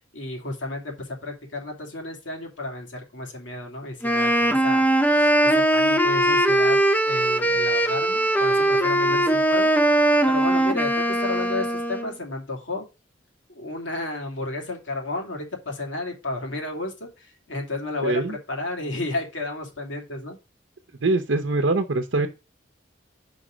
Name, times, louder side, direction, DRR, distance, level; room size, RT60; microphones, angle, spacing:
voice 1, 0.1-4.9 5.1-6.8 7.1-9.7 10.2-12.9 13.5-20.4, left 2 dB, 80° left, 2.6 m, -32 dB
Wind instrument woodwind instrument, 4.0-12.1, right 1 dB, 10° left, 0.6 m, -20 dB
voice 2, 18.0-18.4 21.0-22.3, right 2 dB, 70° right, 0.7 m, -23 dB
5.2 x 5.1 x 6.1 m
head